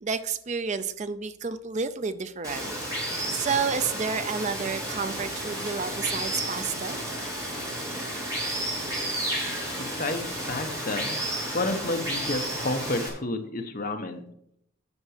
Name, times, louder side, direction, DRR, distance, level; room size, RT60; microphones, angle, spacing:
voice 1, 0.0-7.0, right 5 dB, 35° right, 12 dB, 0.5 m, -30 dB
Water, 2.4-13.1, right 1 dB, 15° right, 4.1 m, -32 dB
voice 2, 9.8-11.2 11.5-14.2, left 2 dB, 40° left, 6 dB, 1.0 m, -30 dB
9.8 x 6.1 x 6.4 m, 0.73 s
head